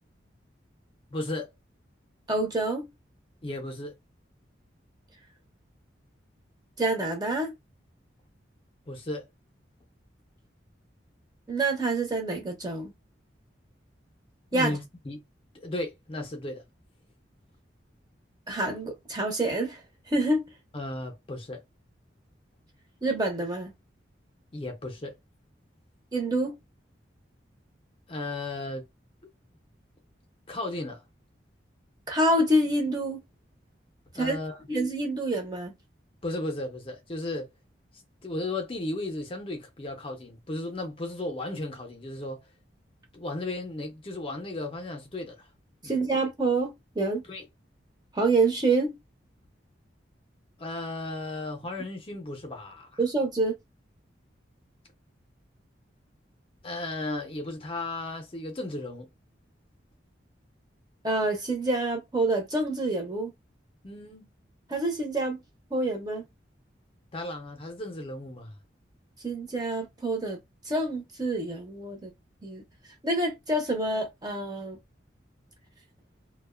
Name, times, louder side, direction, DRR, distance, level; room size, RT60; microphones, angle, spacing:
voice 1, 1.1-1.5 3.4-4.0 8.9-9.3 14.5-15.2 15.5-16.6 20.7-21.6 24.5-25.2 28.1-28.9 30.5-31.0 34.1-34.6 36.2-37.5 38.2-42.4 43.1-45.5 45.8-46.0 47.3-47.4 50.6-53.0 56.6-59.1 63.8-64.3 67.1-68.5, left 2 dB, 30° left, 0.5 m, -35 dB
voice 2, 2.3-2.9 6.8-7.5 11.5-12.9 14.5-14.8 18.5-19.8 20.1-20.5 23.0-23.7 26.1-26.5 32.1-33.2 34.2-34.4 34.7-35.7 45.8-47.2 48.1-49.0 53.0-53.5 61.0-63.3 64.7-65.4 65.7-66.2 69.2-70.4 70.7-72.1 72.4-72.6 73.0-74.8, right 2 dB, 20° right, 0.6 m, -27 dB
2.5 x 2.1 x 2.3 m
head